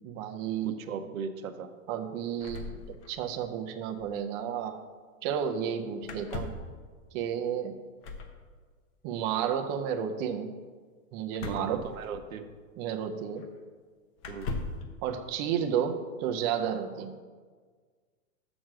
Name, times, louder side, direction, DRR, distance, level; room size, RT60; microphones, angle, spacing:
voice 1, 0.0-0.7 1.9-2.8 3.1-4.8 5.2-6.5 7.1-7.8 9.0-10.5 11.1-11.8 12.8-13.4 15.0-17.1, right 8 dB, 30° right, 5 dB, 0.5 m, -32 dB
voice 2, 0.6-1.7 11.4-12.5 14.3-14.5, right 6 dB, 80° right, 8 dB, 0.9 m, -37 dB
sound 1, 2.4-3.5 3.7-3.8 4.0-4.2 6.0-6.8 8.0-8.4 11.3-12.5 13.4-13.5 14.2-14.9, left 3 dB, 35° left, 1.0 m, -39 dB
6.4 x 6.2 x 6.1 m, 1.5 s
hypercardioid pair, 130°, 40 cm